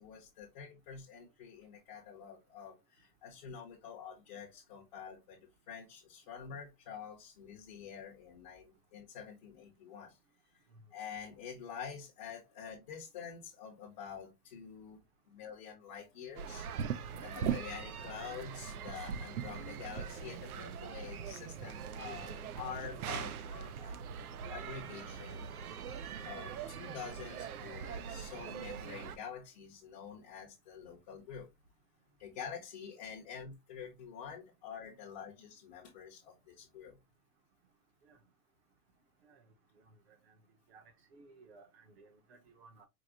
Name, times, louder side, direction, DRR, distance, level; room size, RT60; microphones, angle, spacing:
voice 1, 0.0-10.2 10.5-10.6 10.9-15.0 15.3-16.7 17.2-24.0 24.5-25.5 26.2-31.5 32.2-37.0, left 7 dB, 25° left, 0.8 m, -47 dB
sound 1, 16.4-29.2, right 7 dB, 65° right, 0.7 m, -41 dB
voice 2, 39.8-40.3 40.7-40.8 41.1-42.9, right 3 dB, 40° right, 0.9 m, -59 dB
4.8 x 2.1 x 3.6 m
hypercardioid pair, 165°, 48 cm